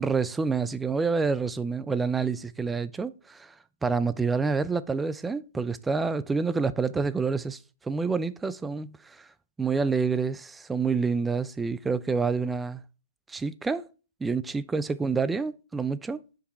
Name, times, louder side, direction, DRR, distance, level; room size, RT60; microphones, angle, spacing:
voice 1, 0.0-3.5 3.8-9.3 9.6-12.8 13.3-13.9 14.2-16.2, right 4 dB, 5° right, 0.3 m, -28 dB
5.3 x 5.1 x 4.0 m
hypercardioid pair, 150°, 0 cm